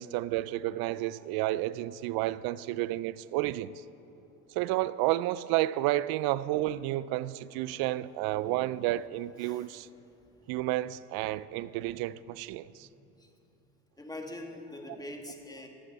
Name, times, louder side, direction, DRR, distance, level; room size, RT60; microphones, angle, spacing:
voice 1, 0.0-3.7 4.5-9.9 10.5-12.9, right 16 dB, 50° right, 0.5 m, -31 dB
voice 2, 1.8-2.1 2.4-2.6 8.4-8.6 9.4-9.6 12.8-12.9 13.2-13.3 14.0-15.7, left 1 dB, 10° left, 1.7 m, -44 dB
17.0 x 13.0 x 4.1 m
hypercardioid pair, 95°, 47 cm